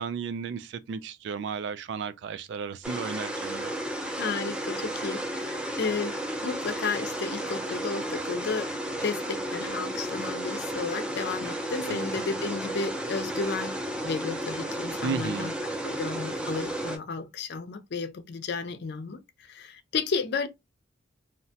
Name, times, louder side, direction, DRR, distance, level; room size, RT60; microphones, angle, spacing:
voice 1, 0.0-3.7 11.9-12.0 15.0-15.5, right 5 dB, 70° right, 0.3 m, -34 dB
sound 1, 2.8-17.0, right 1 dB, 5° right, 0.5 m, -33 dB
voice 2, 4.2-8.7 9.0-13.8 14.0-15.5 15.8-20.5, left 4 dB, 60° left, 0.4 m, -33 dB
2.8 x 2.1 x 2.7 m
head